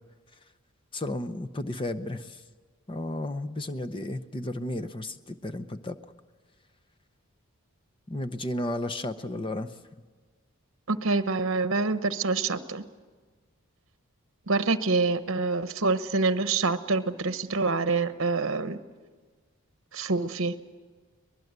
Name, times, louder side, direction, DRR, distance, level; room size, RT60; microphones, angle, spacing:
voice 1, 0.9-2.4 2.9-6.0 8.1-9.7, left 1 dB, 20° left, 11 dB, 0.7 m, -33 dB
voice 2, 10.9-12.8 14.5-18.8 19.9-20.6, right 3 dB, 60° right, 11 dB, 1.0 m, -26 dB
23.0 x 21.0 x 8.1 m, 1.4 s
head